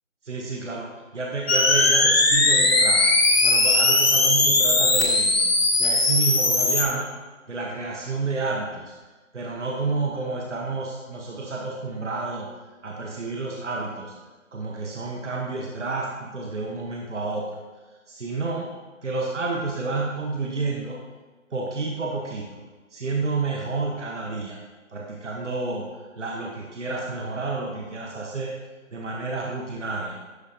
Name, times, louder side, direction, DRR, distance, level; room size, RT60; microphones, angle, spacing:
voice 1, 0.2-0.9 1.1-3.1 3.4-7.1 7.5-8.9 9.3-12.5 12.8-14.1 14.5-17.4 18.1-18.7 19.0-21.0 21.5-22.4 22.9-24.6 24.9-25.8 26.2-28.5 28.9-30.2, right 3 dB, 60° right, -1 dB, 1.1 m, -30 dB
Build Up, 1.5-6.8, left 2 dB, 50° left, 1.2 m, -19 dB
11.5 x 5.0 x 2.8 m, 1.3 s
figure-of-eight pair, 170°, 40 cm